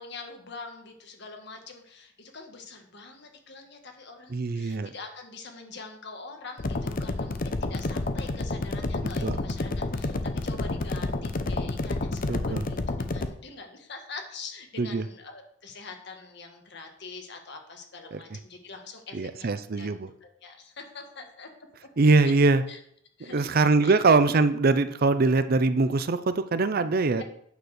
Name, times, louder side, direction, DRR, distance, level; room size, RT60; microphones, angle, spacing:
voice 1, 0.0-10.2 10.4-19.9 20.2-21.7 22.2-22.3 22.7-22.8 23.2-23.5 23.8-24.0 27.2-27.3, left 4 dB, 60° left, 4 dB, 1.5 m, -44 dB
voice 2, 4.3-4.9 9.2-9.4 12.3-12.7 14.8-15.1 18.1-18.2 19.1-20.1 22.0-22.6 23.2-27.2, right 3 dB, 50° right, 12 dB, 0.6 m, -23 dB
sound 1, 6.6-13.3, left 2 dB, 45° left, 0.7 m, -30 dB
9.3 x 4.3 x 6.5 m, 0.67 s
head